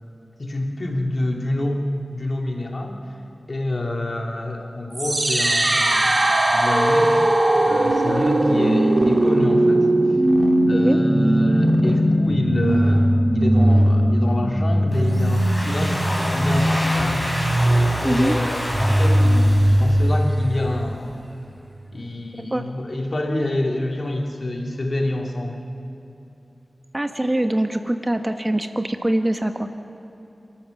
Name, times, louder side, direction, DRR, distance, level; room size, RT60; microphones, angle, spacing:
voice 1, 0.4-3.0 3.5-6.1 6.5-7.3 7.6-9.9 10.6-17.2 18.0-21.1 21.9-25.6, left 1 dB, 55° left, 1 dB, 2.9 m, -27 dB
sound 1, 4.9-21.0, right 1 dB, 50° right, 2.1 m, -19 dB
Domestic sounds home sounds, 14.9-20.5, equal, 15° left, 6.8 m, -29 dB
voice 2, 18.0-18.3 22.4-22.6 26.9-29.7, right 1 dB, 25° right, 7 dB, 1.2 m, -23 dB
30.0 x 13.5 x 7.2 m, 2.8 s
wide cardioid pair, 50°, 0 cm